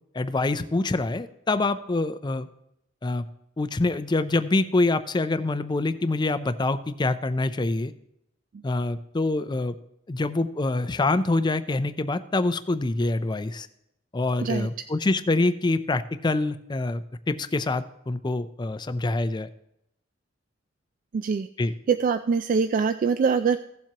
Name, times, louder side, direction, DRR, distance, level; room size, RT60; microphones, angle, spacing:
voice 1, 0.1-2.5 3.0-3.2 3.6-7.9 8.6-9.8 10.1-13.7 14.1-19.5 21.6-21.7, left 2 dB, 25° left, 12 dB, 0.4 m, -25 dB
voice 2, 21.1-21.5 21.9-23.6, right 5 dB, 45° right, 10 dB, 0.3 m, -23 dB
16.0 x 7.4 x 2.9 m, 0.80 s
head